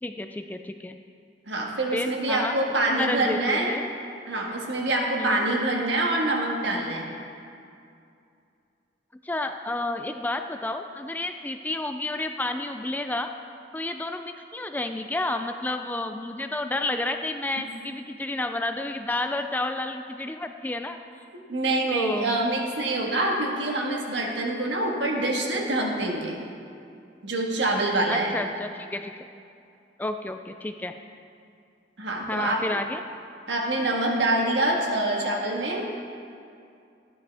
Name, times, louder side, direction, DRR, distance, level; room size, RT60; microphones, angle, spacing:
voice 1, 0.0-1.0 1.9-2.6 2.9-3.8 5.2-5.4 9.2-13.3 13.7-21.0 21.9-22.4 28.1-29.1 30.0-31.0 32.3-33.0, left 2 dB, 10° left, 7 dB, 0.3 m, -30 dB
voice 2, 1.5-3.8 4.3-7.1 21.5-26.4 27.2-28.3 32.0-32.8 33.5-35.9, right 2 dB, 75° right, -1 dB, 1.6 m, -25 dB
13.0 x 10.0 x 3.4 m, 2.4 s
head